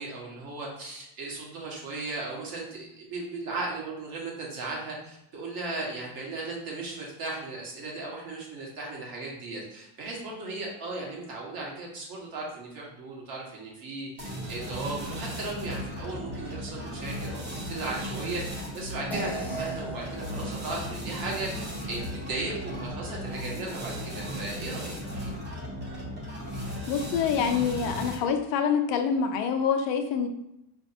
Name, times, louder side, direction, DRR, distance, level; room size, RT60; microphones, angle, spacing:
voice 1, 0.0-25.0, right 3 dB, 45° right, -3 dB, 1.5 m, -36 dB
sound 1, 14.2-28.4, equal, 20° right, 1.0 m, -36 dB
sound 2, 19.1-23.8, right 2 dB, 5° left, 0.5 m, -41 dB
voice 2, 26.9-30.3, left 7 dB, 60° left, 6 dB, 0.6 m, -26 dB
5.2 x 3.3 x 2.8 m, 0.83 s
cardioid pair, 150°, 50 cm